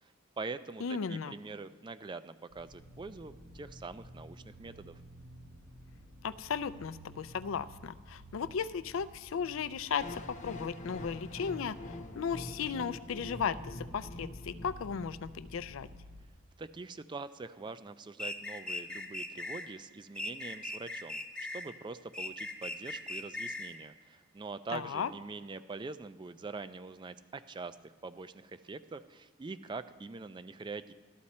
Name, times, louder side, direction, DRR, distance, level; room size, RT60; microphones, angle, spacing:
voice 1, 0.0-5.0 16.6-21.2 21.5-30.9, right 3 dB, 20° right, 13 dB, 0.3 m, -44 dB
voice 2, 0.8-1.3 6.2-11.8 12.1-15.9 24.7-25.1, left 6 dB, 75° left, 13 dB, 0.4 m, -35 dB
sound 1, 2.5-16.3, equal, 75° right, 1.3 m, -52 dB
sound 2, 10.0-16.0, left 1 dB, 35° left, 0.8 m, -45 dB
sound 3, 18.2-19.7 20.2-21.7 22.1-23.8, left 2 dB, 5° left, 0.8 m, -39 dB
13.0 x 12.5 x 4.2 m, 1.5 s
head